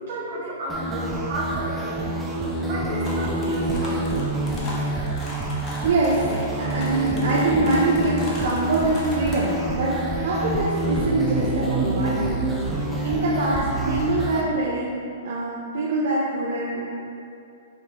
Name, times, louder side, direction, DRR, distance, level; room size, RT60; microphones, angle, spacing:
voice 1, 0.0-2.2 2.7-4.1, right 1 dB, 55° right, -5 dB, 1.2 m, -32 dB
sound 1, 0.7-14.4, right 2 dB, 10° right, 0.5 m, -27 dB
sound 2, 3.0-9.5, left 1 dB, 30° left, 0.9 m, -38 dB
voice 2, 5.8-6.3 6.6-12.4 12.7-12.8 13.0-14.9 15.2-16.9, right 2 dB, 70° right, -6 dB, 0.6 m, -24 dB
5.1 x 3.3 x 3.0 m, 2.6 s
hypercardioid pair, 140°, 0 cm